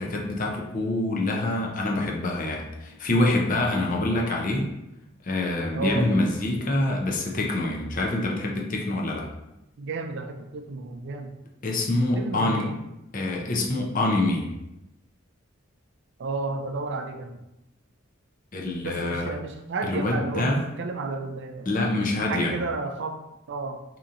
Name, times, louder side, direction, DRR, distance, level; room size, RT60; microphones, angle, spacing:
voice 1, 0.0-4.7 5.2-9.3 11.6-12.7 13.1-14.5 18.5-19.3 19.8-20.6 21.7-22.5, left 2 dB, 40° left, -1 dB, 0.6 m, -25 dB
voice 2, 5.7-6.1 9.8-11.4 12.2-12.8 16.2-17.4 18.8-21.7 22.3-23.2 23.5-23.8, right 3 dB, 60° right, 5 dB, 0.4 m, -32 dB
3.9 x 2.9 x 2.5 m, 0.91 s
head